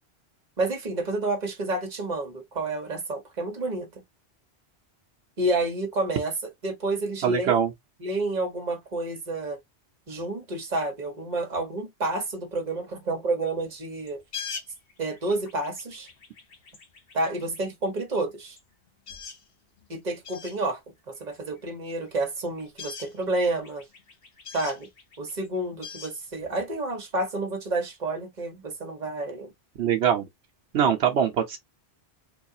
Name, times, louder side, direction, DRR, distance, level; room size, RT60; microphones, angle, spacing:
voice 1, 0.6-4.0 5.4-7.7 8.0-9.6 10.1-14.2 15.0-16.1 17.1-18.6 19.9-20.8 21.1-23.8 24.5-24.9 25.2-29.5, right 2 dB, 45° right, 1.2 m, -29 dB
voice 2, 7.2-7.7 29.8-30.2 30.7-31.6, right 8 dB, 80° right, 1.0 m, -22 dB
sound 1, 14.1-17.6 18.2-18.3 18.6-18.7 18.9-19.5 19.8-19.9 20.2-20.6 21.3-22.1 22.4-27.0, left 6 dB, 65° left, 1.1 m, -42 dB
3.9 x 2.4 x 2.7 m
omnidirectional pair, 1.1 m